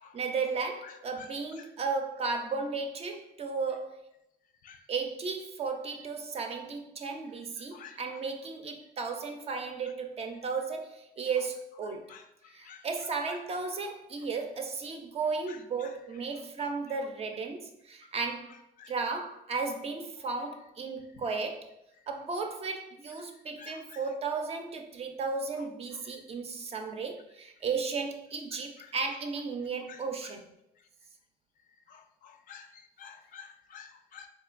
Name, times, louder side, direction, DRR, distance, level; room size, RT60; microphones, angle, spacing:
voice 1, 0.1-4.0 4.9-12.1 12.5-21.7 22.1-30.4, right 4 dB, 35° right, 0.5 m, -35 dB
voice 2, 31.9-32.7 33.0-34.3, left 7 dB, 55° left, 0.4 m, -49 dB
3.7 x 2.7 x 2.4 m
cardioid pair, 110°, 17 cm